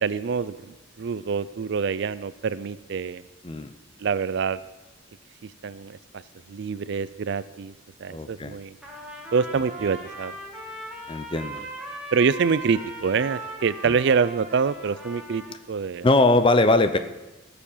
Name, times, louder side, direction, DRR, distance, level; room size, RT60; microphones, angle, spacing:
voice 1, 0.0-3.2 4.0-4.6 5.6-6.0 6.5-7.7 8.0-8.8 9.3-10.3 12.1-15.4 15.7-16.1, right 5 dB, 60° right, 16 dB, 0.4 m, -25 dB
voice 2, 8.1-8.6 11.1-11.6 13.8-14.0 16.0-17.0, left 2 dB, 25° left, 11 dB, 0.5 m, -21 dB
Trumpet, 8.8-15.6, right 1 dB, 5° right, 1.9 m, -39 dB
16.5 x 6.9 x 5.5 m, 1.1 s
head